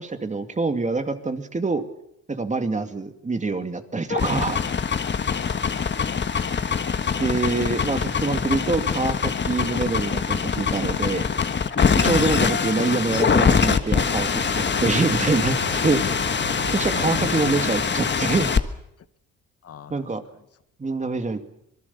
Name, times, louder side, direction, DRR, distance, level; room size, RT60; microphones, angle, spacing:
voice 1, 0.0-1.8 2.3-4.6 7.2-11.3 11.9-16.2 16.7-18.5 19.9-20.2 20.8-21.4, right 3 dB, 25° right, 8 dB, 2.3 m, -25 dB
sound 1, 4.1-18.6, left 6 dB, 35° left, 1.5 m, -23 dB
voice 2, 5.3-6.3 19.6-20.1 20.9-21.0, left 9 dB, 50° left, 12 dB, 1.2 m, -45 dB
sound 2, 12.1-17.6, right 7 dB, 85° right, 4.2 m, -39 dB
26.5 x 19.5 x 7.1 m, 0.76 s
cardioid pair, 90°, 30 cm